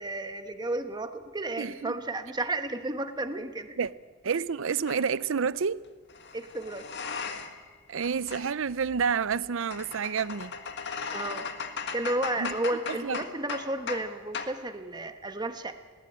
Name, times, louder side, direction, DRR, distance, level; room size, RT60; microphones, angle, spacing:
voice 1, 0.0-3.8 6.3-6.8 11.1-11.5 11.7-15.8, right 2 dB, 20° right, 1.3 m, -33 dB
voice 2, 1.6-2.0 3.8-3.9 4.2-5.8 7.9-10.5 12.4-12.5 12.9-13.2, right 6 dB, 65° right, 0.6 m, -29 dB
sound 1, 4.9-5.1 6.1-7.7 8.0-14.1 14.3-14.6, left 5 dB, 55° left, 1.7 m, -38 dB
20.0 x 18.5 x 8.7 m
head